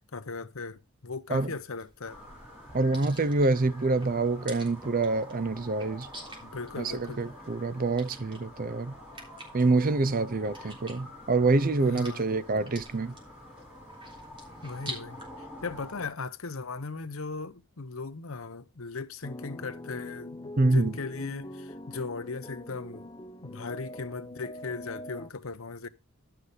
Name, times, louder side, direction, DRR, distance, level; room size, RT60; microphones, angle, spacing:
voice 1, 0.1-2.2 6.4-7.2 10.6-10.7 11.8-12.3 12.5-12.6 14.6-23.1 23.4-25.9, left 4 dB, 75° left, 0.9 m, -38 dB
sound 1, 1.3-15.3, right 1 dB, 25° right, 3.5 m, -49 dB
sound 2, 2.1-16.1, left 1 dB, 5° right, 6.5 m, -48 dB
voice 2, 2.7-6.1 6.8-8.9 9.5-13.1 20.6-20.9, right 3 dB, 40° right, 0.7 m, -26 dB
sound 3, 19.2-25.3, left 1 dB, 20° left, 0.8 m, -43 dB
11.5 x 6.3 x 4.9 m
head